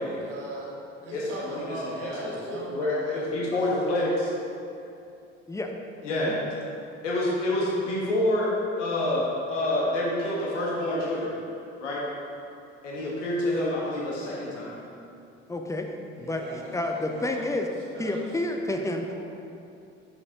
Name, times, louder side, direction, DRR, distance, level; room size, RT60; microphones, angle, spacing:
voice 1, 0.2-3.5 14.4-15.2 16.2-17.5 17.9-18.3 19.1-19.2, right 1 dB, 75° right, -4 dB, 1.4 m, -40 dB
voice 2, 1.1-4.3 6.0-6.4 7.0-11.3 11.8-12.0 12.8-14.8, left 1 dB, 75° left, -4 dB, 1.3 m, -28 dB
voice 3, 15.5-15.9 16.2-17.7 18.0-19.1, left 2 dB, 10° left, 3 dB, 0.6 m, -30 dB
7.4 x 6.3 x 2.8 m, 2.6 s
figure-of-eight pair, 55°, 37 cm